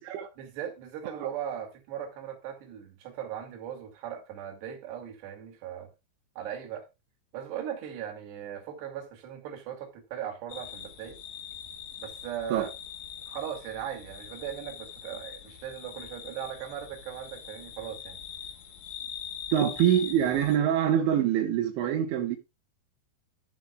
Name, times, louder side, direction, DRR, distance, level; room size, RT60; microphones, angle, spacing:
voice 1, 0.4-5.9 6.4-6.9 7.3-11.2 12.0-12.7 13.3-18.2, right 9 dB, 70° right, 4.1 m, -38 dB
sound 1, 10.5-20.6, left 8 dB, 65° left, 2.4 m, -43 dB
voice 2, 19.5-22.4, right 10 dB, 85° right, 3.5 m, -25 dB
15.0 x 7.4 x 2.4 m
omnidirectional pair, 5.2 m